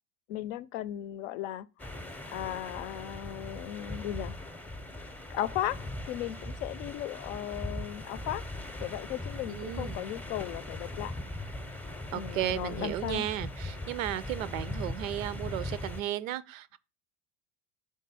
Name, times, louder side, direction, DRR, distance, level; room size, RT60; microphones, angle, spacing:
voice 1, 0.3-1.7 2.3-4.3 5.3-5.8 6.1-8.4 8.8-11.1 12.1-13.3, left 12 dB, 70° left, 0.6 m, -36 dB
sound 1, 1.8-16.0, left 1 dB, 5° left, 0.6 m, -40 dB
voice 2, 9.5-10.1 12.1-16.8, right 13 dB, 85° right, 0.6 m, -34 dB
5.5 x 3.6 x 5.5 m
hypercardioid pair, 80°, 39 cm